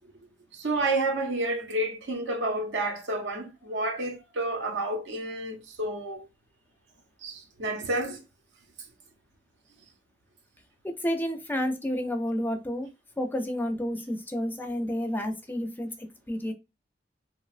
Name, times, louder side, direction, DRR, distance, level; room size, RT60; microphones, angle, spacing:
voice 1, 0.5-6.2 7.2-8.2, right 2 dB, 85° right, 0.7 m, -30 dB
voice 2, 10.8-12.9 13.2-15.9 16.3-16.5, equal, 10° left, 0.4 m, -30 dB
2.9 x 2.1 x 2.4 m
head